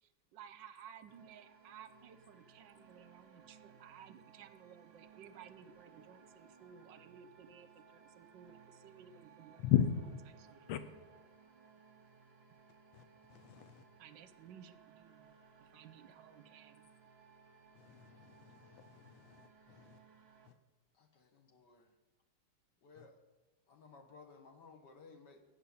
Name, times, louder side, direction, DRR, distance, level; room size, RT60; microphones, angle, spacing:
voice 1, 0.0-9.7 10.5-10.7 14.0-15.3 15.6-16.9, right 8 dB, 70° right, 12 dB, 1.2 m, -57 dB
sound 1, 1.1-20.5, right 6 dB, 40° right, 1.0 m, -62 dB
voice 2, 9.6-10.2 10.7-10.8 12.9-13.9 17.7-20.0 20.4-20.6 23.0-23.1, left 10 dB, 70° left, 11 dB, 1.6 m, -37 dB
voice 3, 20.9-22.0 22.8-23.2 23.7-25.4, left 4 dB, 55° left, 5 dB, 1.8 m, -58 dB
15.0 x 5.3 x 9.4 m, 1.3 s
omnidirectional pair, 2.4 m